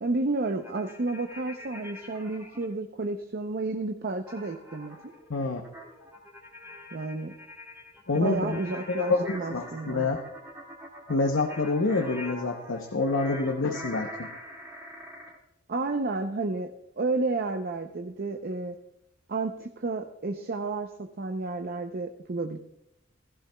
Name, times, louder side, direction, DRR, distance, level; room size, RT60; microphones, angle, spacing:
voice 1, 0.0-5.0 6.9-7.3 8.1-10.1 15.7-18.8 19.3-20.9 21.2-22.6, right 3 dB, 50° right, 6 dB, 0.6 m, -31 dB
sound 1, 0.6-2.7 4.3-15.4, left 1 dB, 10° right, 2.0 m, -44 dB
voice 2, 5.3-5.6 8.1-8.6 8.9-10.2 11.1-14.3, left 3 dB, 80° left, 4 dB, 0.8 m, -27 dB
16.0 x 15.0 x 2.3 m, 0.84 s
head